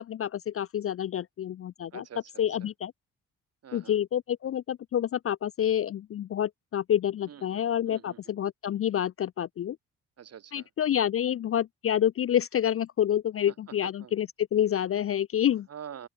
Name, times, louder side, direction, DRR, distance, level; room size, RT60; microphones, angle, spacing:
voice 1, 0.0-2.1 2.4-2.9 3.7-9.8 10.5-15.7, left 10 dB, 35° left, 0.4 m, -28 dB
voice 2, 1.9-2.4 3.6-3.9 7.3-7.6 7.9-8.2 10.2-10.7 13.5-13.6 14.0-14.1 15.7-16.1, right 8 dB, 40° right, 0.7 m, -45 dB
open air
hypercardioid pair, 45°, 40 cm